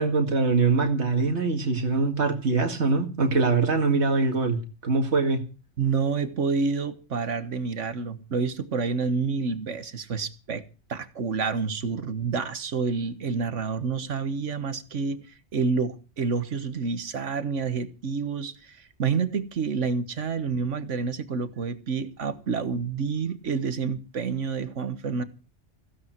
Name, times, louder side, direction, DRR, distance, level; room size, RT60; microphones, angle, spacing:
voice 1, 0.0-5.4, right 3 dB, 65° right, 2.4 m, -23 dB
voice 2, 5.8-10.6 10.9-15.2 15.5-25.2, right 5 dB, 85° right, 1.7 m, -28 dB
15.5 x 15.5 x 4.5 m
omnidirectional pair, 1.2 m